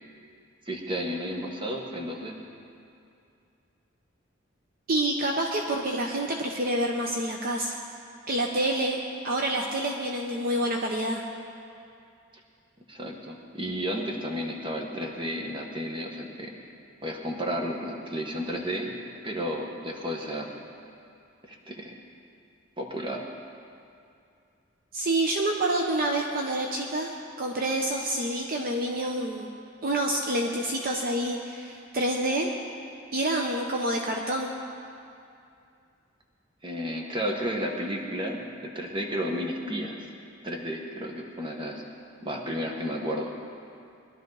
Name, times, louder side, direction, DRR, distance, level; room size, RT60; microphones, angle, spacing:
voice 1, 0.7-2.4 12.9-16.5 17.0-18.9 19.2-20.5 21.5-21.9 22.8-23.2 36.6-40.0 40.4-41.8 42.2-43.3, equal, 25° right, 1 dB, 1.4 m, -32 dB
voice 2, 4.9-7.8 8.3-9.0 9.2-11.2 24.9-27.1 27.4-29.5 29.8-32.5 33.1-34.5, right 1 dB, 50° right, 1 dB, 0.9 m, -27 dB
21.0 x 11.5 x 4.0 m, 2.5 s
head